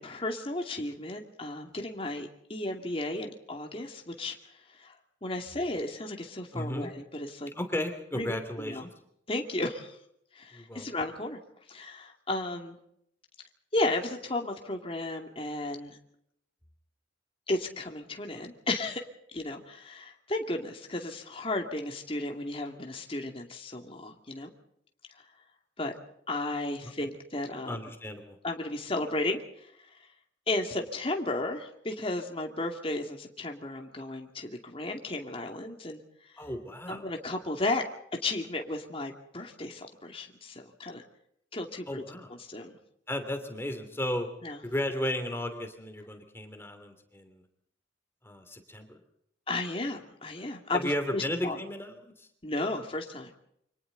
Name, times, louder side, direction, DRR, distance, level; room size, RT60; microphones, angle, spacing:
voice 1, 0.0-4.3 4.8-7.5 8.1-8.8 9.3-10.0 10.3-11.4 11.7-12.8 13.7-16.0 17.5-19.0 19.3-24.5 25.8-25.9 26.3-27.8 28.4-29.7 30.5-36.0 36.9-37.8 38.2-41.0 41.5-42.0 42.3-42.8 44.4-44.6 49.5-51.6 52.4-53.3, left 2 dB, 30° left, 3 dB, 2.5 m, -34 dB
voice 2, 6.5-6.9 7.5-8.9 10.5-10.8 27.7-28.4 36.4-37.0 41.9-42.3 43.1-44.3 44.6-47.4 48.2-49.0 50.7-52.3, left 1 dB, 15° left, 7 dB, 2.9 m, -34 dB
28.5 x 26.0 x 4.0 m, 0.72 s
head